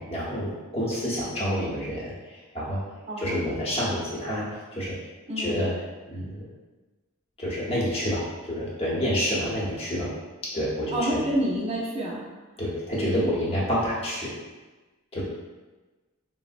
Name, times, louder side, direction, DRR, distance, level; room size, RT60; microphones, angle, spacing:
voice 1, 0.0-2.8 3.2-4.9 5.4-5.7 6.1-6.5 7.4-10.1 10.4-11.2 12.6-14.3 15.1-15.2, equal, 30° left, -7 dB, 0.8 m, -28 dB
voice 2, 3.1-3.4 5.3-5.6 10.9-12.2, equal, 30° right, -4 dB, 0.6 m, -28 dB
3.7 x 2.0 x 2.5 m, 1.2 s
head